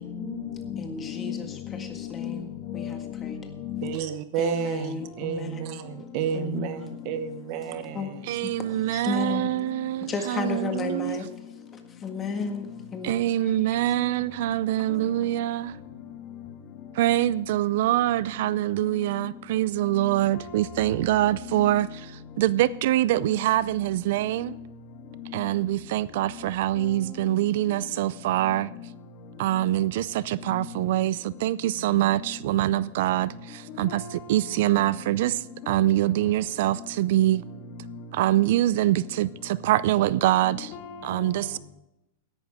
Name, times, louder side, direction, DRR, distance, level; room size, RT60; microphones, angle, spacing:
voice 1, 0.1-3.9 20.3-21.0 33.9-34.5 35.6-35.8 40.7-41.6, left 8 dB, 40° left, 1.7 m, -36 dB
voice 2, 0.8-3.4 4.4-5.7 6.3-7.0 7.9-8.1 8.4-8.5 8.9-9.5 10.1-11.3 11.7-13.5, left 4 dB, 20° left, 1.8 m, -34 dB
voice 3, 3.8-8.4, right 8 dB, 45° right, 1.0 m, -31 dB
voice 4, 8.3-11.2 13.0-15.7 16.9-22.1 22.4-24.6 25.3-28.7 29.4-37.4 38.1-40.7 41.0-41.6, right 14 dB, 60° right, 0.4 m, -24 dB
16.0 x 11.5 x 3.6 m
supercardioid pair, 155°, 0 cm